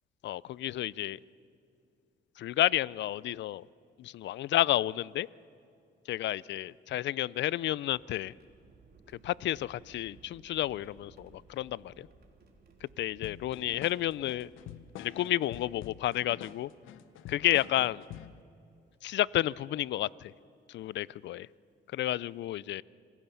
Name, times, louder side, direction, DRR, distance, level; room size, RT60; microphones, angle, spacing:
voice 1, 0.2-1.2 2.4-3.6 4.0-5.3 6.1-8.3 9.2-12.1 13.0-14.5 15.0-16.7 17.3-18.0 19.0-20.1 20.7-21.5 21.9-22.8, left 14 dB, 65° left, 23 dB, 0.4 m, -31 dB
sound 1, 6.5-15.5 16.4-16.5 18.0-18.2 18.9-19.1 20.7-20.8 21.3-21.5, right 4 dB, 50° right, 3.4 m, -60 dB
sound 2, 13.2-18.4, left 10 dB, 85° left, 0.8 m, -47 dB
27.0 x 16.0 x 7.1 m, 2.4 s
cardioid pair, 90°, 20 cm